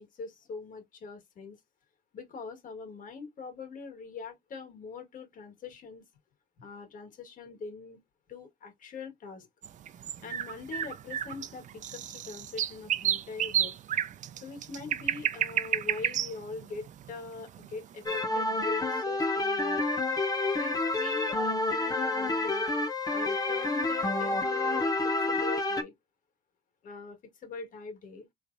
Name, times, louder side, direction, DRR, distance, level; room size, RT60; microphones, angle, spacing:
voice 1, 0.0-1.6 2.1-6.0 6.6-8.0 8.3-9.5 10.2-13.7 14.4-19.8 20.5-22.7 23.1-25.9 26.8-28.2, left 4 dB, 50° left, 1.6 m, -42 dB
sound 1, 9.6-17.9, right 10 dB, 45° right, 0.5 m, -31 dB
sound 2, 18.1-25.8, left 2 dB, 20° left, 0.9 m, -29 dB
4.0 x 3.2 x 2.6 m
cardioid pair, 110°, 17 cm